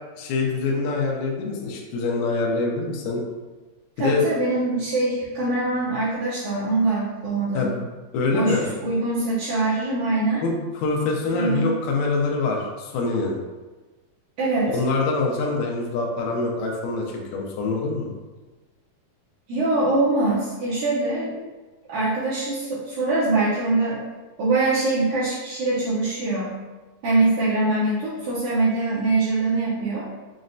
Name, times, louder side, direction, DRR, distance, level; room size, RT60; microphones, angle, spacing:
voice 1, 0.2-3.2 4.0-4.3 7.5-7.9 8.1-8.7 10.4-13.4 14.7-18.2, left 3 dB, 80° left, -1 dB, 2.1 m, -25 dB
voice 2, 4.0-7.7 8.3-10.4 11.3-11.7 14.4-14.8 19.5-21.5 21.9-24.0 24.4-26.6 27.0-30.1, right 2 dB, 80° right, -9 dB, 1.8 m, -23 dB
6.2 x 2.1 x 2.5 m, 1.2 s
omnidirectional pair, 4.1 m